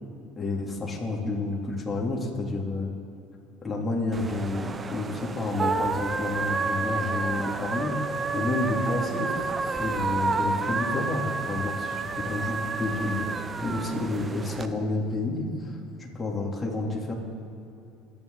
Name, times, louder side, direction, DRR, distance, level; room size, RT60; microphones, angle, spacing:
voice 1, 0.4-2.9 3.6-8.0 8.3-13.2 13.6-17.1, left 2 dB, 20° left, -2 dB, 3.4 m, -30 dB
sound 1, 4.1-14.7, right 4 dB, 25° right, 0.8 m, -30 dB
24.5 x 9.8 x 4.1 m, 2.7 s
supercardioid pair, 90°, 0 cm